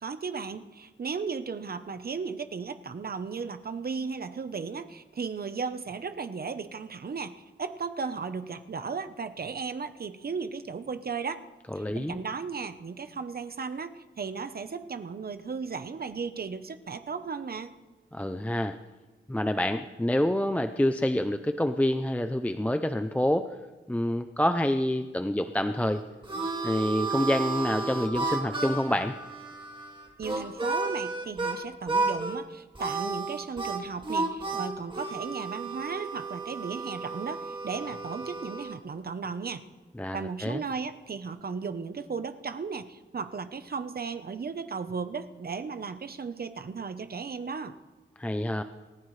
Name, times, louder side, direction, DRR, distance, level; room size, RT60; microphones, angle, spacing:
voice 1, 0.0-11.4 11.8-17.7 30.2-39.6 40.1-47.8, right 5 dB, 50° right, 10 dB, 0.9 m, -35 dB
voice 2, 11.7-12.2 18.1-18.8 19.3-23.6 23.9-26.0 26.6-29.1 40.0-40.6 48.2-48.6, left 1 dB, 5° left, 7 dB, 0.5 m, -27 dB
Harmonica, 25.8-31.6 31.9-32.4 32.7-38.8, right 3 dB, 25° right, 2.2 m, -32 dB
28.0 x 15.0 x 3.3 m, 1.3 s
wide cardioid pair, 140°, 20 cm